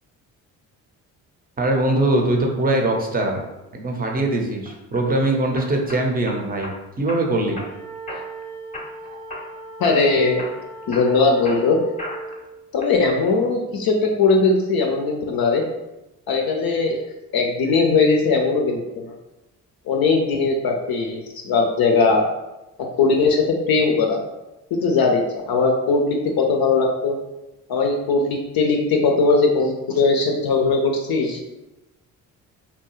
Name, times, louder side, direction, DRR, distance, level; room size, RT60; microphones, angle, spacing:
voice 1, 1.6-3.4 3.7-7.6, right 1 dB, 20° right, 2 dB, 0.6 m, -22 dB
sound 1, 4.7-5.0 5.6-6.8 7.1-7.7 8.1-8.4 8.7-9.5 9.8-10.1 10.4-12.4 12.8-13.3, left 1 dB, 15° left, 0.7 m, -36 dB
sound 2, 7.5-12.4, right 2 dB, 85° right, 0.7 m, -38 dB
voice 2, 9.8-10.4 10.9-11.8 12.7-15.6 16.3-17.0 17.3-19.1 19.9-22.3 22.8-24.2 24.7-27.2 27.7-31.4, left 4 dB, 50° left, 1 dB, 0.5 m, -19 dB
2.8 x 2.2 x 2.9 m, 0.98 s
hypercardioid pair, 50°, 47 cm